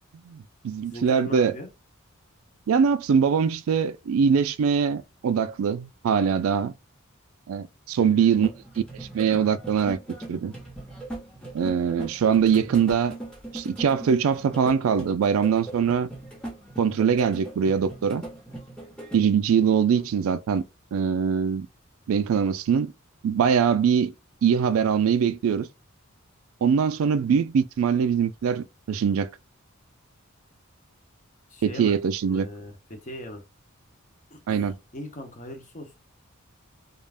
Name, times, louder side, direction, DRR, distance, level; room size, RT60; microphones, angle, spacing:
voice 1, 0.2-1.5 2.7-6.7 7.5-10.0 10.3-10.5 11.5-13.2 13.5-16.1 16.8-18.2 19.1-20.6 20.9-21.7 22.1-22.9 23.2-24.1 24.4-25.7 26.6-29.3 31.6-32.5 34.5-34.7, right 7 dB, 75° right, 0.3 m, -23 dB
voice 2, 0.9-1.7 8.0-8.3 19.8-20.1 31.5-32.0 32.3-33.4 34.3-34.7 34.9-36.0, left 1 dB, 35° left, 0.8 m, -39 dB
sound 1, 8.4-19.3, right 2 dB, 5° left, 0.8 m, -40 dB
2.4 x 2.1 x 3.3 m
head